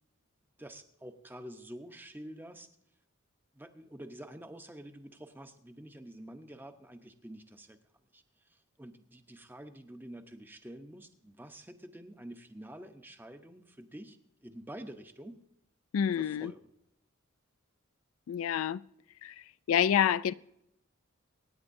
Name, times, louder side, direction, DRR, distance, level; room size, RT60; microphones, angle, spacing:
voice 1, 0.6-2.7 3.5-7.8 8.1-15.4 16.1-16.7, right 1 dB, 10° right, 0.8 m, -48 dB
voice 2, 15.9-16.5 18.3-18.8 19.2-20.3, left 9 dB, 75° left, 0.3 m, -28 dB
25.0 x 9.9 x 2.6 m
head